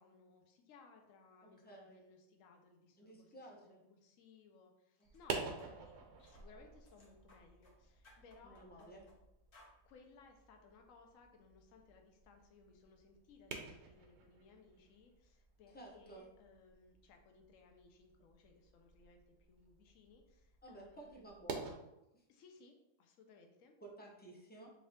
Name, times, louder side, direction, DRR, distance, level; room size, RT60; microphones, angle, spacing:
voice 1, 0.0-9.1 9.8-21.3 22.3-23.7, left 4 dB, 75° left, 4 dB, 1.0 m, -63 dB
voice 2, 1.4-2.0 3.0-3.8 5.0-5.5 8.4-9.0 15.7-16.2 20.6-21.7 22.1-22.2 23.8-24.7, right 2 dB, 10° left, -2 dB, 0.5 m, -55 dB
sound 1, 5.0-5.2 5.6-5.7 6.2-6.5 6.8-7.8 8.0-9.2 9.5-9.8, left 1 dB, 50° left, 0.9 m, -65 dB
sound 2, 5.0-21.7, right 4 dB, 65° right, 0.9 m, -50 dB
4.7 x 2.7 x 3.3 m, 0.89 s
omnidirectional pair, 1.4 m